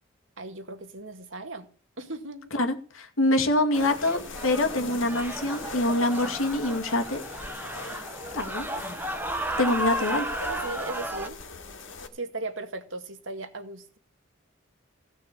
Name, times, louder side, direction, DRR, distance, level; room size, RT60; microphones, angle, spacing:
voice 1, 0.4-1.7 2.0-2.5 9.7-9.8 10.4-11.4 12.1-14.0, right 2 dB, 70° right, 2.1 m, -37 dB
voice 2, 2.5-7.2 8.3-8.7 9.6-10.3, left 1 dB, 85° left, 2.3 m, -25 dB
sound 1, 3.7-12.1, left 4 dB, 65° left, 2.5 m, -42 dB
sound 2, 3.7-11.3, right 1 dB, 10° right, 1.5 m, -34 dB
16.5 x 6.5 x 8.6 m
head